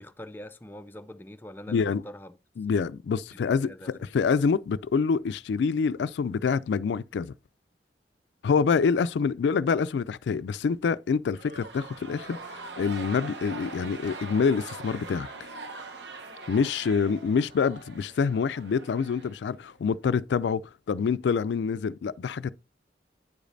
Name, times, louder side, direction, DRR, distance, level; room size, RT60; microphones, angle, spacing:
voice 1, 0.0-2.4 2.7-2.8 3.3-3.9, left 1 dB, 10° left, 0.4 m, -44 dB
voice 2, 1.7-2.0 2.6-7.3 8.4-15.3 16.5-20.6 20.9-22.5, left 5 dB, 80° left, 0.3 m, -26 dB
sound 1, 11.3-19.8, right 3 dB, 80° right, 1.1 m, -42 dB
9.5 x 5.1 x 2.6 m
head